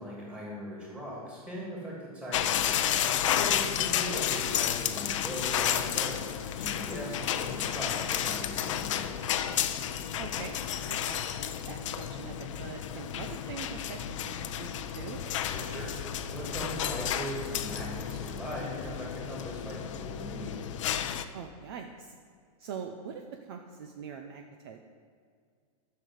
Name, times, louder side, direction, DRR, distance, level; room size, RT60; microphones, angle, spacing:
voice 1, 0.0-2.9 3.5-6.2 6.5-9.3 15.5-20.6, equal, 5° right, -6 dB, 3.0 m, -39 dB
sound 1, 2.3-21.2, left 10 dB, 55° left, 0.7 m, -32 dB
voice 2, 10.2-10.6 10.9-15.2 21.3-22.1 22.6-24.9, right 6 dB, 40° right, 4 dB, 0.7 m, -43 dB
11.5 x 6.7 x 8.0 m, 2.1 s
supercardioid pair, 170°, 19 cm